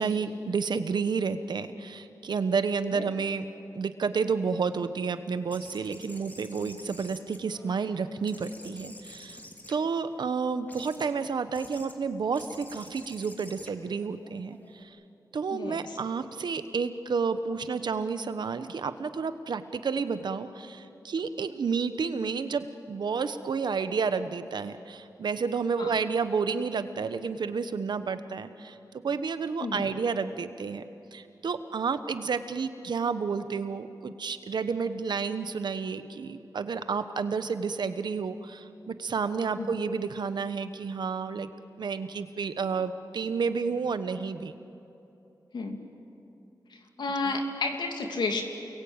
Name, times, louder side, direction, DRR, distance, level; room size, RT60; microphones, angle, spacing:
voice 1, 0.0-3.4 3.7-9.4 9.7-14.9 15.3-28.7 29.0-30.8 31.1-41.5 41.8-44.5 47.3-47.4, right 5 dB, 75° right, 11 dB, 1.2 m, -30 dB
sound 1, 5.5-7.9 8.3-10.2 10.7-11.1 11.5-11.9 12.3-14.8, left 1 dB, 20° left, 2.8 m, -49 dB
voice 2, 15.5-16.0 25.8-25.9 29.6-29.9 39.6-39.7 45.5-45.8 46.7-48.4, left 3 dB, 80° left, 3 dB, 2.8 m, -32 dB
29.0 x 22.0 x 9.0 m, 2.9 s
wide cardioid pair, 95°, 8 cm